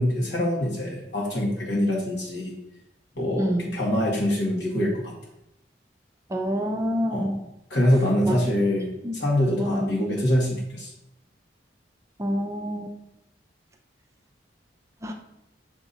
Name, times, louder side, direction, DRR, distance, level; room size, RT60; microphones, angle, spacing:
voice 1, 0.0-2.5 3.2-5.1 7.1-7.3 7.7-10.9, left 1 dB, 70° left, -3 dB, 1.9 m, -24 dB
voice 2, 6.3-7.4 8.3-8.4 9.0-9.2 9.5-9.9 12.2-12.9 15.0-15.1, equal, 15° right, 3 dB, 0.5 m, -27 dB
7.0 x 3.6 x 4.0 m, 0.85 s
head